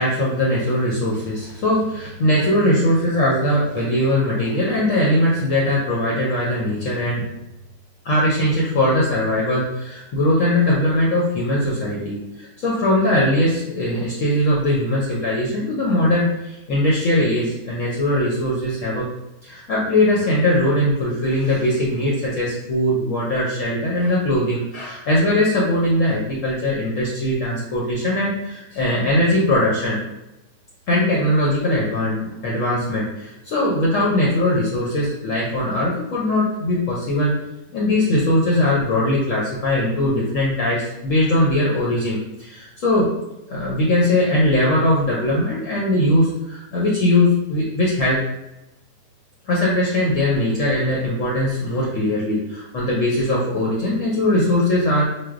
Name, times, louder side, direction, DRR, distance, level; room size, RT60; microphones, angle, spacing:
voice 1, 0.0-7.2 8.0-19.1 19.4-30.0 30.9-37.3 37.7-43.1 43.5-48.2 49.5-55.1, left 1 dB, 65° left, -5 dB, 0.9 m, -20 dB
4.1 x 2.2 x 2.4 m, 0.93 s
omnidirectional pair, 1.7 m